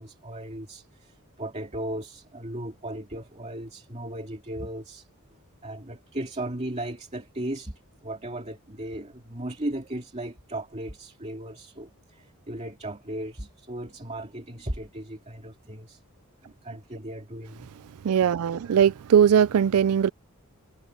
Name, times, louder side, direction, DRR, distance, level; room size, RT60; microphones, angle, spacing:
voice 1, 0.0-5.1 5.6-16.0 16.4-17.7 18.5-18.8, right 1 dB, 30° right, 2.4 m, -36 dB
voice 2, 18.0-20.1, right 8 dB, 75° right, 0.4 m, -20 dB
head